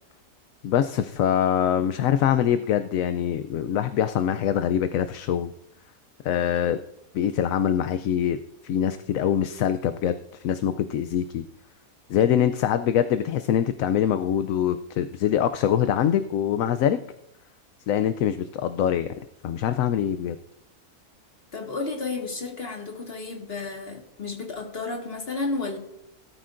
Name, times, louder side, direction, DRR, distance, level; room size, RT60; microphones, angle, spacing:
voice 1, 0.6-5.5 6.2-6.8 7.1-8.4 8.6-10.2 10.4-11.4 12.1-17.0 17.9-19.1 19.4-20.4, left 9 dB, 70° left, 10 dB, 0.9 m, -24 dB
voice 2, 21.5-25.8, left 3 dB, 40° left, 0 dB, 2.0 m, -32 dB
18.0 x 13.0 x 2.6 m, 0.84 s
omnidirectional pair, 1.6 m